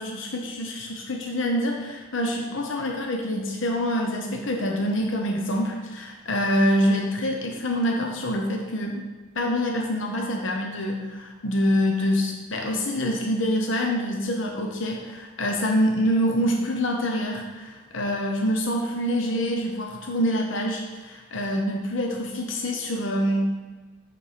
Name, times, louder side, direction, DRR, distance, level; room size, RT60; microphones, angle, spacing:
voice 1, 0.0-9.0 9.3-23.6, equal, 75° left, 1 dB, 0.8 m, -26 dB
8.2 x 4.2 x 5.1 m, 1.3 s
head